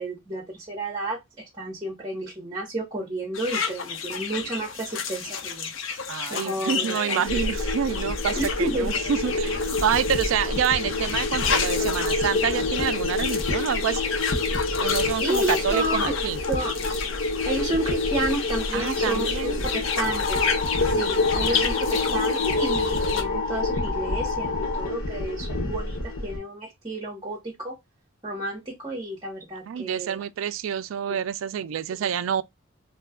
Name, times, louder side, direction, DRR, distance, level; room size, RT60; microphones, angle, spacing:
voice 1, 0.0-5.7 6.3-7.2 8.4-9.0 15.2-16.2 16.5-16.9 17.4-20.5 20.8-27.7 28.2-30.2, right 1 dB, 20° right, 0.9 m, -31 dB
sound 1, 3.3-23.2, left 6 dB, 65° left, 0.5 m, -31 dB
voice 2, 6.1-14.0 14.8-16.4 18.7-19.6 21.4-21.6 22.0-22.3 29.7-32.4, right 8 dB, 70° right, 0.3 m, -28 dB
sound 2, 7.3-26.4, left 2 dB, 85° left, 1.0 m, -28 dB
sound 3, 19.8-24.9, left 4 dB, 45° left, 1.1 m, -31 dB
2.7 x 2.3 x 3.5 m
head